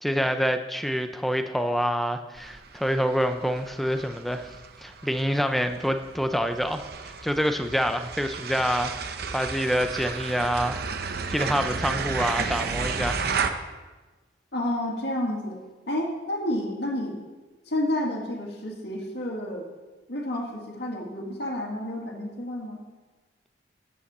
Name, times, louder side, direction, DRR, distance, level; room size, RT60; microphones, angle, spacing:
voice 1, 0.0-4.5 4.8-10.8 11.3-13.4, equal, ahead, 7 dB, 0.5 m, -27 dB
sound 1, 2.4-13.5, right 5 dB, 55° right, 0.7 m, -33 dB
voice 2, 14.5-15.6 15.9-17.2 17.7-19.6 20.1-22.8, left 1 dB, 60° left, -1 dB, 2.1 m, -30 dB
12.5 x 8.5 x 4.3 m, 1.2 s
head